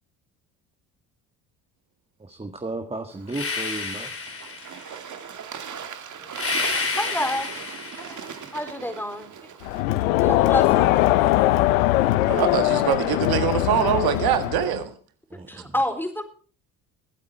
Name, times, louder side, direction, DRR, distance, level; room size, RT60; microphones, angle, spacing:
voice 1, 2.2-4.1 15.3-15.7, right 2 dB, 15° right, 1.7 m, -34 dB
Bird / Water, 3.1-9.8, right 7 dB, 50° right, 2.1 m, -39 dB
sound 1, 3.3-5.0 6.3-8.4, left 4 dB, 35° left, 3.7 m, -30 dB
voice 2, 7.0-7.5 8.0-8.2 8.5-9.3 10.2-10.9 15.5-16.2, left 1 dB, 5° left, 4.2 m, -28 dB
Crowd, 9.6-14.8, left 16 dB, 90° left, 0.8 m, -21 dB
voice 3, 12.3-14.9, right 10 dB, 70° right, 1.6 m, -23 dB
23.5 x 8.4 x 4.5 m
hypercardioid pair, 65°, 39 cm